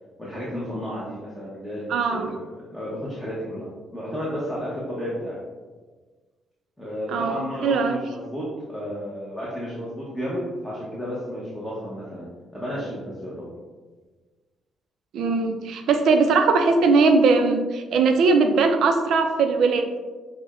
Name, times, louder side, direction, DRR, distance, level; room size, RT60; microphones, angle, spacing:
voice 1, 0.2-2.4 2.7-3.7 3.9-5.3 6.8-13.5, equal, 5° left, -7 dB, 0.8 m, -32 dB
voice 2, 1.9-2.3 7.1-8.0 15.1-20.0, right 4 dB, 75° right, 6 dB, 0.4 m, -20 dB
6.3 x 2.1 x 2.4 m, 1.4 s
cardioid pair, 90°, 0 cm